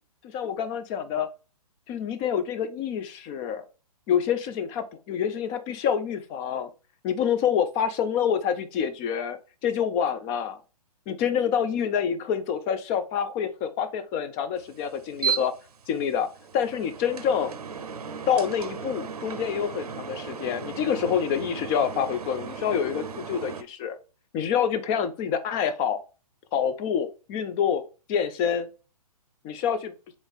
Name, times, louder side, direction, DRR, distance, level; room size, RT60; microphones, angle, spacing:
voice 1, 0.3-1.3 1.9-3.6 4.1-6.7 7.0-10.6 11.1-15.5 15.9-16.3 16.5-17.5 18.3-24.0 24.3-26.0 26.5-27.8 28.1-28.7 29.4-29.9, left 8 dB, 20° left, 11 dB, 0.4 m, -27 dB
sound 1, 14.6-23.6, right 6 dB, 75° right, 0.6 m, -35 dB
3.9 x 3.6 x 3.5 m, 0.33 s
figure-of-eight pair, 125°, 20 cm